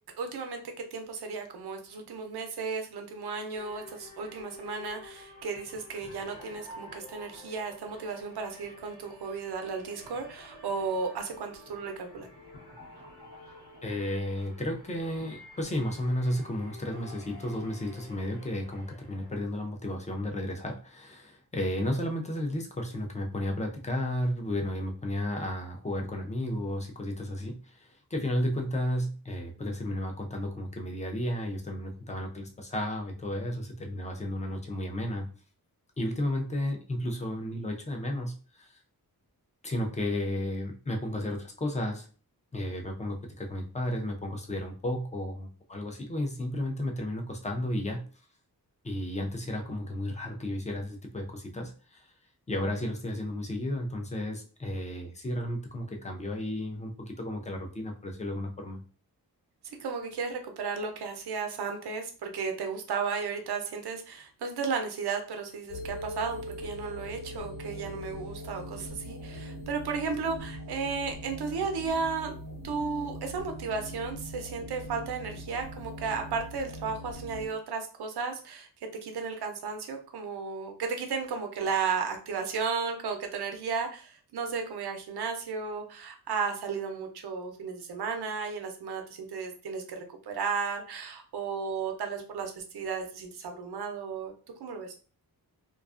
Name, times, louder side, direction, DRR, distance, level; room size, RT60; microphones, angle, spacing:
voice 1, 0.2-0.6 0.9-12.3 59.6-72.3 72.6-78.7 79.0-94.3 94.6-94.9, right 5 dB, 90° right, 5 dB, 0.6 m, -34 dB
sound 1, 3.5-19.3, left 2 dB, 85° left, 1.0 m, -50 dB
voice 2, 13.8-35.3 36.0-38.8 39.6-42.1 42.5-48.0 48.8-52.1 52.5-58.8, left 1 dB, 20° left, 2 dB, 0.4 m, -33 dB
sound 2, 65.7-77.5, equal, 55° left, 0.9 m, -41 dB
2.4 x 2.3 x 2.4 m, 0.39 s
wide cardioid pair, 130°, 38 cm